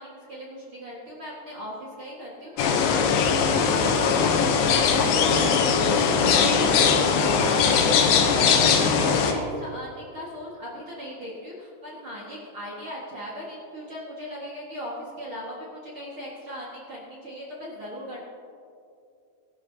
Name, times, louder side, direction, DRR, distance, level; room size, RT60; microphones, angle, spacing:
voice 1, 0.0-18.2, equal, 45° right, -5 dB, 1.9 m, -38 dB
sound 1, 2.6-9.3, left 6 dB, 70° left, 2.4 m, -20 dB
22.5 x 12.0 x 2.8 m, 2.5 s
omnidirectional pair, 4.8 m